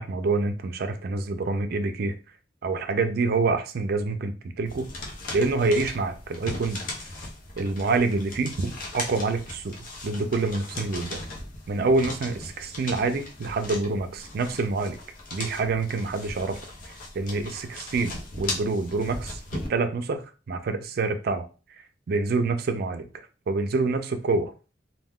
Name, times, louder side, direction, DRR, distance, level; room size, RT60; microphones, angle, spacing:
voice 1, 0.0-2.1 2.6-4.9 5.3-6.8 7.6-9.8 10.0-11.2 11.7-15.0 15.3-16.6 17.1-19.4 19.7-21.5 22.1-23.1 23.5-24.5, right 3 dB, 60° right, 8 dB, 0.4 m, -26 dB
sound 1, 4.7-19.7, left 2 dB, 50° left, 0.7 m, -38 dB
2.2 x 2.2 x 3.5 m, 0.34 s
head